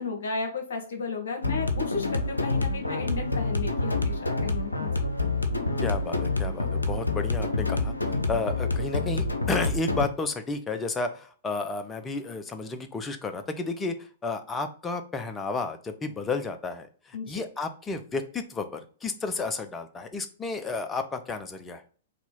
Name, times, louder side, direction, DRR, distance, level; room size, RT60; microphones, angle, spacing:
voice 1, 0.0-4.9 17.1-17.4, left 4 dB, 60° left, 3 dB, 1.4 m, -34 dB
sound 1, 1.4-10.1, left 3 dB, 85° left, 0.6 m, -27 dB
voice 2, 5.8-7.9 8.3-21.8, left 3 dB, 15° left, 7 dB, 0.6 m, -32 dB
4.1 x 2.9 x 3.7 m, 0.42 s
figure-of-eight pair, 105°, 0 cm